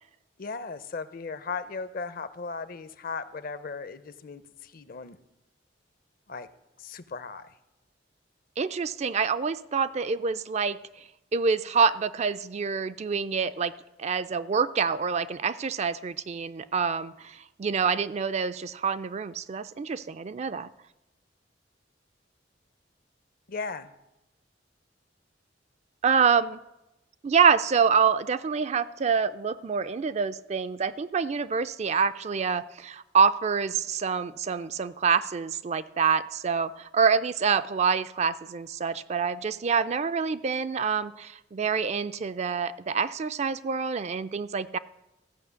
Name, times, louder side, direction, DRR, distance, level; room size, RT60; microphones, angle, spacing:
voice 1, 0.4-5.2 6.3-6.5 6.8-7.6 23.5-23.9, left 4 dB, 50° left, 13 dB, 0.6 m, -37 dB
voice 2, 8.6-10.8 11.3-13.7 14.0-20.7 26.0-26.6 27.2-44.8, right 6 dB, 35° right, 13 dB, 0.4 m, -26 dB
14.5 x 5.7 x 8.1 m, 0.95 s
head